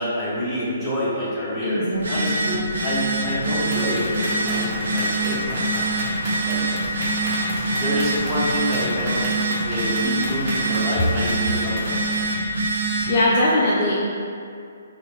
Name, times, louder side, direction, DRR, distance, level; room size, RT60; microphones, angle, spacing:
voice 1, 0.0-1.8 2.1-4.7 4.9-6.2 6.4-6.6 7.7-9.3 9.6-12.2, left 1 dB, 5° left, -12 dB, 0.9 m, -27 dB
voice 2, 1.6-2.4 13.1-13.9, left 1 dB, 35° left, -8 dB, 0.5 m, -21 dB
Telephone, 1.9-13.2, right 2 dB, 65° right, 0.5 m, -25 dB
sound 1, 3.6-12.3, equal, 25° right, 1.0 m, -33 dB
2.8 x 2.0 x 3.2 m, 2.4 s
figure-of-eight pair, 135°, 0 cm